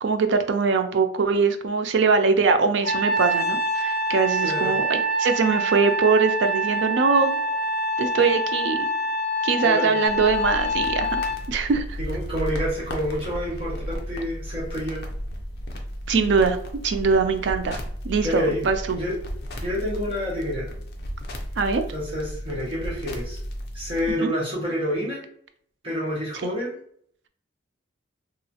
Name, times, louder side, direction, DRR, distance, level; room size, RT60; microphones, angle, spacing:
voice 1, 0.0-7.4 8.0-8.8 9.4-11.2 11.5-12.0 16.1-16.6 16.8-19.0 21.6-21.8 24.2-24.3 26.4-26.5, right 4 dB, 65° right, 7 dB, 0.4 m, -22 dB
Trumpet, 2.8-11.4, equal, 20° left, 0.7 m, -25 dB
voice 2, 4.4-4.7 9.6-9.9 12.0-15.0 18.2-18.6 19.0-19.2 19.6-20.7 21.9-23.4 23.7-25.2 25.8-26.7, equal, 30° right, -7 dB, 1.1 m, -28 dB
sound 1, 10.1-24.1, equal, 55° left, 0.5 m, -34 dB
2.9 x 2.4 x 2.7 m, 0.64 s
head